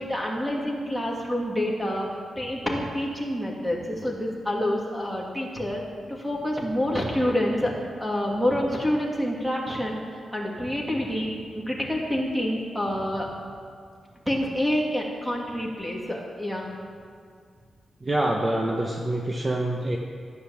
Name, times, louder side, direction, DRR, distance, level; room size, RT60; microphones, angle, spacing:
voice 1, 0.0-2.1 2.4-5.8 6.1-7.7 8.0-13.3 14.3-16.7, equal, ahead, -2 dB, 2.5 m, -27 dB
voice 2, 18.0-20.0, right 1 dB, 25° right, 1 dB, 1.0 m, -26 dB
13.0 x 9.7 x 7.2 m, 2.1 s
wide cardioid pair, 125°, 0 cm